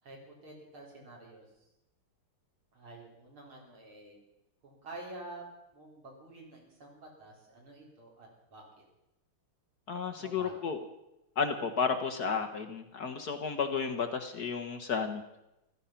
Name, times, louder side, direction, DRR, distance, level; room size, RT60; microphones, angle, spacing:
voice 1, 0.0-1.5 2.7-4.2 4.6-5.4 5.7-8.8 10.2-10.5, right 2 dB, 75° right, -2 dB, 4.9 m, -49 dB
voice 2, 9.9-10.8 11.4-15.2, left 5 dB, 55° left, 6 dB, 1.4 m, -32 dB
15.0 x 14.0 x 5.7 m, 0.89 s
omnidirectional pair, 2.4 m